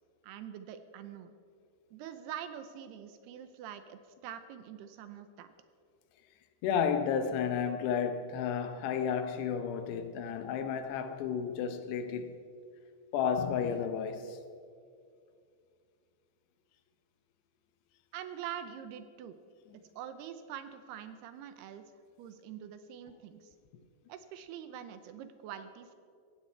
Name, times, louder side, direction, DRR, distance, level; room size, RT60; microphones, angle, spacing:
voice 1, 0.2-1.3 1.9-5.5 18.1-19.4 20.0-21.8 22.2-23.6 24.1-25.9, right 9 dB, 80° right, 2.6 m, -44 dB
voice 2, 6.6-12.3 13.1-14.4, left 7 dB, 80° left, 3.0 m, -32 dB
18.0 x 16.0 x 4.6 m
omnidirectional pair, 5.0 m